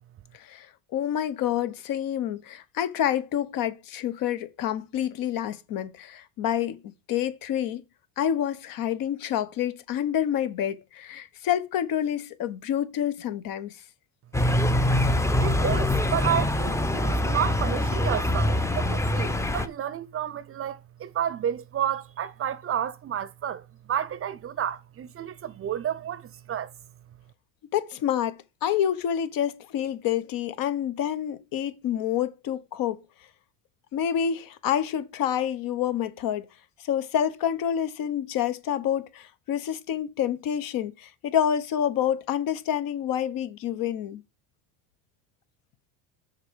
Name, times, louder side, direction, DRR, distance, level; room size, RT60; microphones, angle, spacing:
voice 1, 0.9-6.8 7.1-7.8 8.2-13.7 27.7-33.0 33.9-36.5 36.9-44.2, left 10 dB, 60° left, 1.3 m, -28 dB
sound 1, 14.3-19.7, left 1 dB, 5° left, 0.7 m, -24 dB
voice 2, 15.4-26.7, right 9 dB, 35° right, 0.7 m, -31 dB
6.6 x 4.6 x 6.3 m
supercardioid pair, 105°, 39 cm